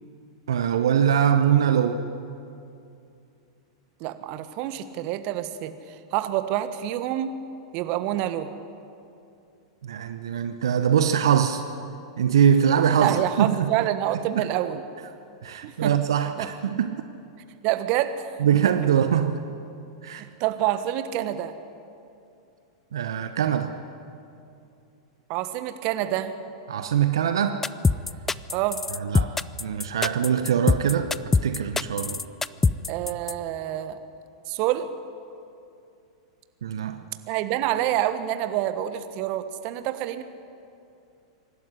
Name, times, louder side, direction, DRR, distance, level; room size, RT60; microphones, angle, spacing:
voice 1, 0.5-2.0 9.8-11.6 12.2-13.7 14.4-14.5 15.4-17.0 18.4-19.4 20.0-20.2 22.9-23.7 26.7-27.7 29.0-29.3 29.6-31.1 31.4-32.2 36.6-37.0, right 8 dB, 70° right, 8 dB, 1.0 m, -22 dB
voice 2, 4.0-7.4 7.7-8.5 13.0-14.8 15.6-15.9 16.4-16.5 17.6-18.3 20.0-21.5 25.3-26.4 28.5-28.8 32.9-34.0 34.5-34.9 37.3-40.2, right 13 dB, 45° right, 10 dB, 1.4 m, -27 dB
sound 1, 27.6-33.3, left 4 dB, 10° left, 0.5 m, -23 dB
25.5 x 12.0 x 10.0 m, 2.6 s
figure-of-eight pair, 95°, 3 cm